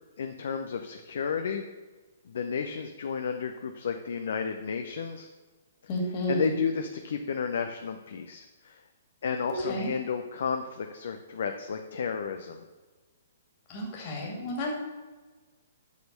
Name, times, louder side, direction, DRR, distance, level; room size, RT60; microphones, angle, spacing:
voice 1, 0.2-1.7 2.3-5.3 6.3-8.8 9.2-12.6, left 6 dB, 60° left, 6 dB, 0.7 m, -32 dB
voice 2, 5.9-6.5 9.5-9.9 13.7-14.7, equal, 35° left, -1 dB, 2.4 m, -31 dB
8.3 x 6.1 x 6.8 m, 1.3 s
figure-of-eight pair, 120°, 0 cm